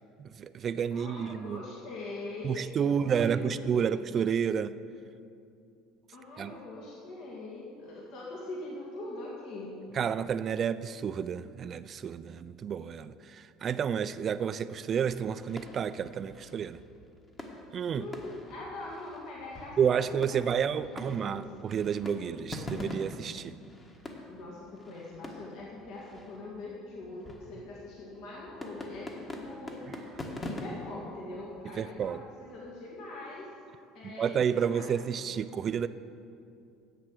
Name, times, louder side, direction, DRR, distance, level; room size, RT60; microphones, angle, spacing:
voice 1, 0.2-1.6 2.4-4.7 6.4-6.6 9.9-16.8 17.7-18.0 19.8-23.5 31.8-32.2 34.0-35.9, right 7 dB, 40° right, 14 dB, 0.4 m, -30 dB
voice 2, 0.9-4.0 6.1-9.8 17.9-21.5 24.3-29.9 30.4-33.5 33.9-35.0, left 2 dB, 65° left, -4 dB, 2.0 m, -43 dB
sound 1, 14.9-32.7, left 1 dB, 25° left, 1.4 m, -45 dB
10.5 x 7.7 x 6.3 m, 2.5 s
supercardioid pair, 110°, 0 cm